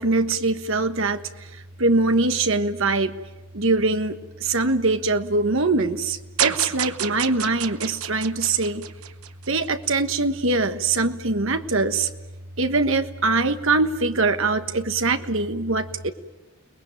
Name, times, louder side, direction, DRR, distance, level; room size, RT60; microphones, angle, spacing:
voice 1, 0.0-3.1 3.5-8.9 9.5-12.1 12.6-16.1, right 3 dB, 60° right, 8 dB, 1.4 m, -23 dB
sound 1, 6.4-9.7, right 10 dB, 80° right, 1.1 m, -29 dB
30.0 x 20.0 x 9.0 m, 1.1 s
head